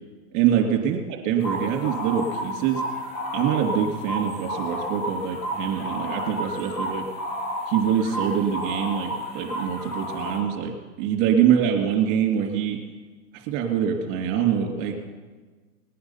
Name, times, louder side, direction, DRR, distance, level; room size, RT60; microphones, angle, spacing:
voice 1, 0.3-1.0 1.2-2.8 3.3-7.1 7.7-10.7 11.0-12.8 13.3-15.0, right 8 dB, 40° right, 3 dB, 2.6 m, -24 dB
sound 1, 1.4-10.4, equal, 85° left, 4.5 m, -31 dB
20.0 x 9.4 x 5.7 m, 1.4 s
supercardioid pair, 150°, 49 cm